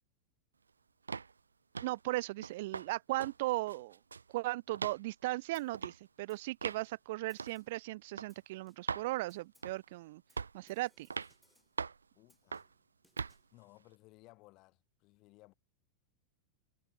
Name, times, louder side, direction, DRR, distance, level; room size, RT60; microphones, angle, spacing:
sound 1, 1.1-1.3 1.7-2.0 2.4-2.9 3.2-3.4 3.7-4.3 4.7-5.0 5.7-6.0 6.6-6.8 7.4-7.6 8.2-8.3 8.9-9.1 9.6-9.9 10.4-10.6 11.1-11.3 11.8-12.0 12.5-12.7 13.2-13.4, right 5 dB, 75° right, 0.9 m, -40 dB
voice 1, 1.8-4.0 4.3-10.2 10.5-11.1, right 19 dB, 50° right, 0.6 m, -37 dB
Snare drum, 5.5-5.9 6.3-7.0 7.3-7.9 8.3-9.0 9.3-9.8 10.3-11.8 12.3-13.5, left 1 dB, ahead, 5.9 m, -71 dB
voice 2, 12.1-12.6 13.5-15.5, left 22 dB, 40° left, 6.4 m, -60 dB
figure-of-eight pair, 90°, 0 cm